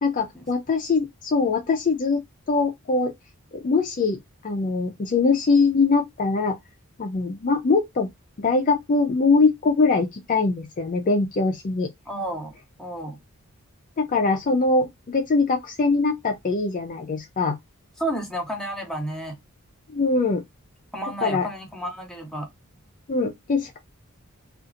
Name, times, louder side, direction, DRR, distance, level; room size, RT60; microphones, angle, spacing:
voice 1, 0.0-2.2 2.5-3.1 3.5-4.2 4.4-6.6 7.0-8.1 8.4-11.9 14.0-17.6 19.9-20.4 21.2-21.5 23.1-23.8, left 3 dB, 35° left, 0.4 m, -22 dB
voice 2, 12.1-13.2 18.0-19.4 20.9-22.5, right 1 dB, 5° left, 0.8 m, -31 dB
2.7 x 2.4 x 2.4 m
head